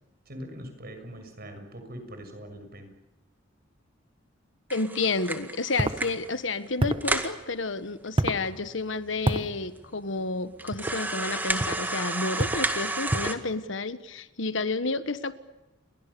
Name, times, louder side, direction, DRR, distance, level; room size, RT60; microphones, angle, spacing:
voice 1, 0.2-2.9, equal, 50° right, 6 dB, 6.6 m, -42 dB
voice 2, 4.7-15.3, left 3 dB, 75° left, 12 dB, 1.5 m, -30 dB
sound 1, 4.7-6.3 6.7-6.8 7.0-7.4 8.1-8.2 8.4-8.5 9.2-9.3 9.8-9.9 10.6-13.3, right 2 dB, 10° right, 2.0 m, -31 dB
sound 2, 5.8-6.0 6.8-7.1 8.2-8.5 9.3-9.5 10.7-11.0 11.6-11.9 12.4-12.7 13.1-13.4, right 1 dB, 25° right, 1.3 m, -27 dB
30.0 x 22.5 x 7.0 m, 1.0 s
head